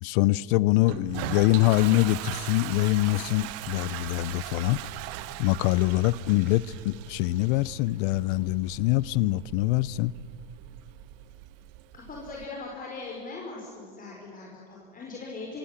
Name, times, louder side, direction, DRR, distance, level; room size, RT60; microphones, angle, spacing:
voice 1, 0.0-4.8 5.4-10.1, left 17 dB, 60° left, 0.8 m, -24 dB
Toilet flush, 0.9-12.4, right 15 dB, 50° right, 1.2 m, -40 dB
voice 2, 11.9-15.6, left 3 dB, 25° left, 4.9 m, -40 dB
26.0 x 24.0 x 7.4 m
hypercardioid pair, 105°, 31 cm